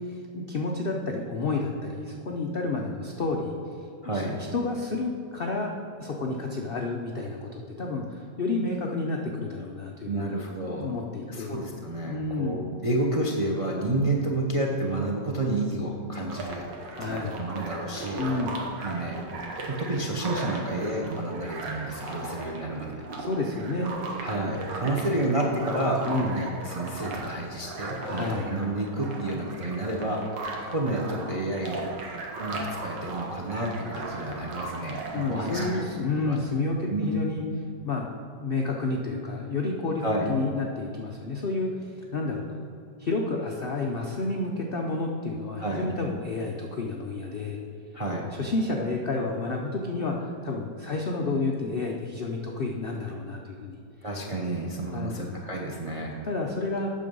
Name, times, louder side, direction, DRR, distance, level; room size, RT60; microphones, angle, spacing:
voice 1, 0.0-3.6 4.0-5.7 6.0-10.4 10.7-11.6 12.1-12.6 16.9-17.4 18.2-18.7 23.2-23.9 26.0-26.3 28.0-28.5 35.1-37.4 37.8-38.1 38.4-40.0 40.3-42.5 43.0-47.6 48.3-50.2 50.4-53.8 54.9-55.4 56.2-56.9, left 3 dB, 85° left, 0 dB, 0.5 m, -30 dB
voice 2, 4.0-4.4 10.0-10.9 11.3-16.7 17.0-18.2 18.8-19.2 19.7-22.9 24.2-30.2 30.7-31.9 32.4-35.8 36.2-36.4 36.9-37.1 40.0-40.3 45.6-45.9 47.9-48.3 54.0-56.2, right 2 dB, 35° right, 0 dB, 0.5 m, -30 dB
sound 1, 16.3-35.9, right 2 dB, 80° right, 1.9 m, -37 dB
8.7 x 6.6 x 5.4 m, 2.5 s
omnidirectional pair, 1.9 m